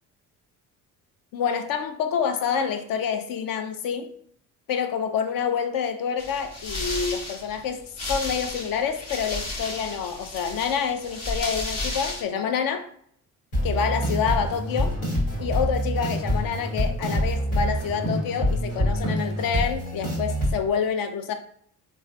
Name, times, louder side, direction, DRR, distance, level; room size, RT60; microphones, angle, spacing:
voice 1, 1.3-4.1 4.7-12.9 13.6-15.0 15.4-21.3, left 7 dB, 50° left, 0.5 m, -27 dB
sound 1, 6.2-12.2, left 2 dB, 35° left, 1.0 m, -33 dB
sound 2, 13.5-20.5, equal, 85° left, 1.4 m, -26 dB
3.1 x 2.3 x 2.5 m
hypercardioid pair, 50°, 43 cm